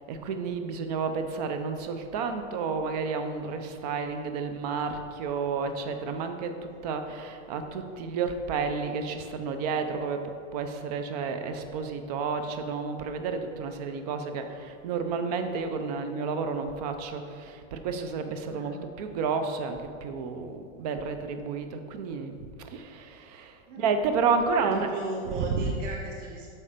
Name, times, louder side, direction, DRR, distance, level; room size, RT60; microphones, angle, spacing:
voice 1, 0.1-6.5 6.8-10.2 10.5-24.9 25.2-25.8, right 5 dB, 30° right, 7 dB, 0.5 m, -31 dB
voice 2, 18.5-18.9 23.7-23.8 24.5-26.5, right 3 dB, 70° right, -1 dB, 1.5 m, -37 dB
8.6 x 6.0 x 5.0 m, 2.3 s
supercardioid pair, 170°, 38 cm